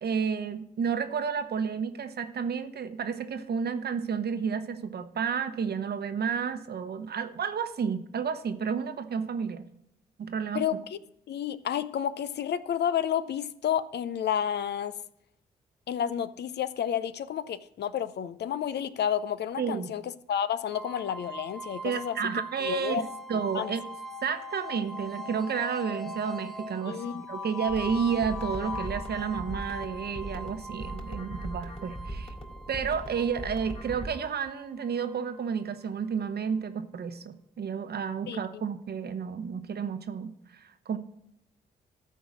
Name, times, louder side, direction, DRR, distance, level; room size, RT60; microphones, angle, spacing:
voice 1, 0.0-9.6 10.2-10.6 19.6-19.9 21.8-23.8 24.2-32.3 32.7-41.0, right 6 dB, 50° right, 10 dB, 0.9 m, -31 dB
voice 2, 10.5-11.0 11.3-14.9 15.9-22.3 22.6-23.0 23.3-23.7 26.9-27.2 38.3-38.6, left 9 dB, 55° left, 15 dB, 0.5 m, -31 dB
sound 1, 20.7-35.6, left 1 dB, ahead, 0.9 m, -41 dB
sound 2, 27.7-34.1, right 1 dB, 30° left, 3.0 m, -40 dB
13.5 x 4.6 x 6.2 m, 0.79 s
hypercardioid pair, 40°, 21 cm